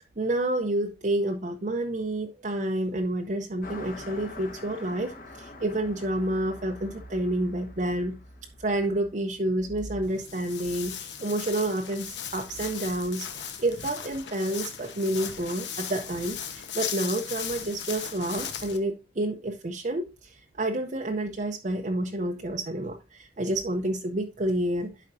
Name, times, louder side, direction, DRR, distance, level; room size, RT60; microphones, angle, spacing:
voice 1, 0.2-8.2 8.6-24.9, right 1 dB, 40° right, 2 dB, 0.6 m, -29 dB
Car passing by, 3.6-9.4, left 2 dB, 45° left, 1.4 m, -45 dB
Walk footsteps, 10.0-18.8, left 8 dB, 70° left, 1.1 m, -37 dB
11.5 x 5.0 x 2.6 m, 0.30 s
head